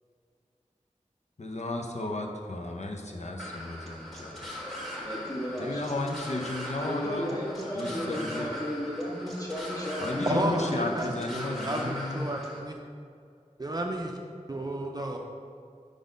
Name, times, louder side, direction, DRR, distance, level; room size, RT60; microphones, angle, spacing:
voice 1, 1.4-4.6 5.6-7.4 7.7-8.5 10.0-12.2, left 2 dB, 60° left, 2 dB, 0.7 m, -34 dB
sound 1, 3.4-12.6, left 1 dB, ahead, 1.3 m, -40 dB
voice 2, 5.0-5.8 6.8-10.7 10.9-11.0, equal, 30° left, -5 dB, 1.5 m, -34 dB
voice 3, 10.3-12.8 13.6-14.1 14.5-15.2, right 1 dB, 30° right, 1 dB, 0.4 m, -31 dB
5.1 x 4.0 x 5.1 m, 2.4 s
wide cardioid pair, 50°, 13 cm